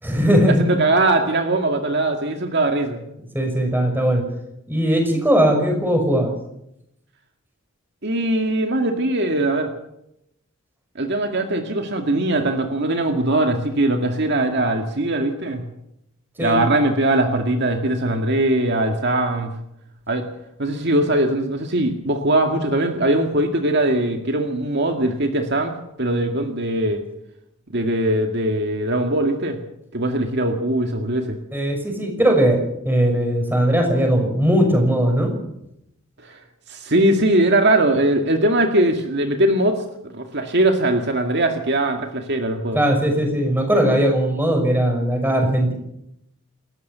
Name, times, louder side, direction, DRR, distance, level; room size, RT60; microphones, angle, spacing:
voice 1, 0.0-0.6 3.3-4.2 4.7-6.3 16.4-16.6 31.5-32.6 32.8-35.3 42.7-45.7, equal, 10° right, 3 dB, 6.1 m, -19 dB
voice 2, 0.6-3.0 8.0-9.7 11.0-15.7 16.4-19.5 20.1-20.3 20.6-25.7 26.0-27.0 27.7-29.6 29.9-31.4 36.2-36.4 36.7-39.8 40.1-42.8, right 1 dB, 55° right, 4 dB, 2.1 m, -20 dB
28.5 x 14.0 x 6.9 m, 0.80 s
head